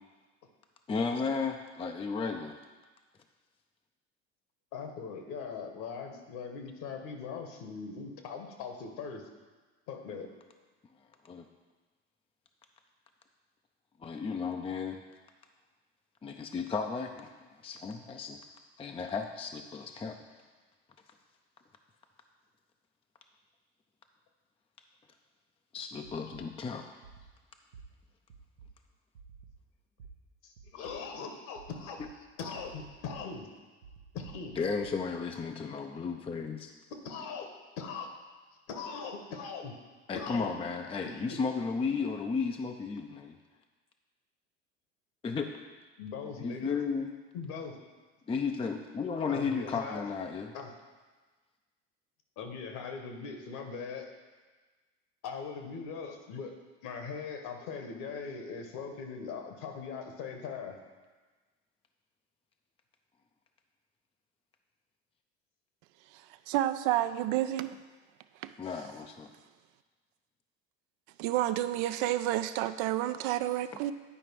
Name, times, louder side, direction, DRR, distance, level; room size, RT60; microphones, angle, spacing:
voice 1, 0.9-2.6 11.2-11.5 14.0-15.0 16.2-18.4 18.8-20.2 25.7-26.9 32.0-32.1 34.6-36.7 40.1-43.4 45.2-45.5 46.4-47.1 48.3-50.5 68.6-69.3, left 5 dB, 15° left, 5 dB, 0.5 m, -34 dB
voice 2, 4.7-9.2 9.9-10.3 30.4-32.0 32.4-33.5 34.1-34.6 37.0-37.5 37.8-38.1 38.7-39.7 40.1-40.5 41.0-41.4 46.0-46.8 47.3-47.8 49.3-50.0 50.5-50.7 52.4-54.1 55.2-56.6 56.8-60.8, left 5 dB, 55° left, 5 dB, 1.4 m, -40 dB
sound 1, 26.0-26.4 27.0-27.3 27.7-27.8 28.3-28.7 29.1-29.5 30.0-30.1 30.6-30.9 31.6-32.1 32.5-33.2 33.8-34.9, right 6 dB, 80° right, 0.9 m, -52 dB
voice 3, 66.5-67.8 68.4-68.5 71.2-73.9, right 13 dB, 50° right, 11 dB, 0.5 m, -30 dB
9.9 x 4.9 x 4.7 m, 1.3 s
hypercardioid pair, 70°, 37 cm